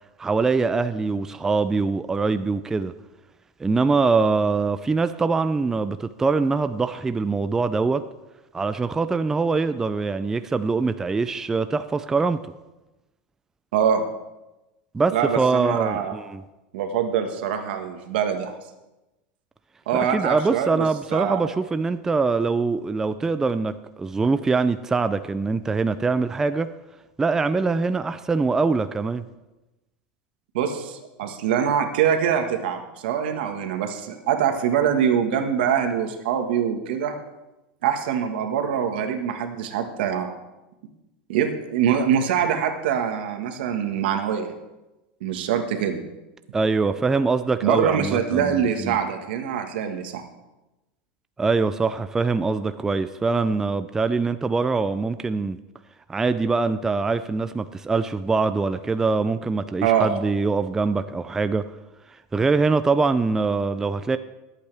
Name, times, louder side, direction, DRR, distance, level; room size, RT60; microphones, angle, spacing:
voice 1, 0.2-2.9 3.6-8.0 8.5-12.4 14.9-16.4 19.9-26.7 27.2-29.3 46.5-49.0 51.4-55.6 56.1-61.6 62.3-64.2, right 4 dB, 10° right, 11 dB, 0.3 m, -23 dB
voice 2, 13.7-14.0 15.1-16.2 16.7-18.5 19.9-20.8 21.1-21.5 30.5-37.2 37.8-40.3 41.3-44.5 45.2-46.0 47.6-50.2 59.8-60.1, right 8 dB, 80° right, 6 dB, 1.5 m, -24 dB
21.5 x 8.4 x 3.4 m, 1.0 s
supercardioid pair, 155°, 5 cm